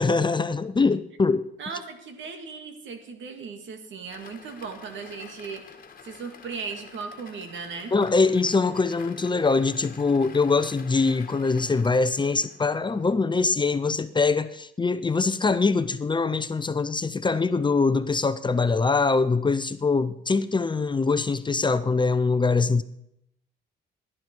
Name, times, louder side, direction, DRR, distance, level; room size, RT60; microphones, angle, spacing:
voice 1, 0.0-1.5 7.9-22.8, left 4 dB, 25° left, 0.7 m, -23 dB
voice 2, 1.6-5.8 6.0-7.9, right 5 dB, 70° right, 2.3 m, -37 dB
sound 1, 4.1-13.2, left 6 dB, 45° left, 1.7 m, -48 dB
17.0 x 11.5 x 4.7 m
cardioid pair, 90°, 20 cm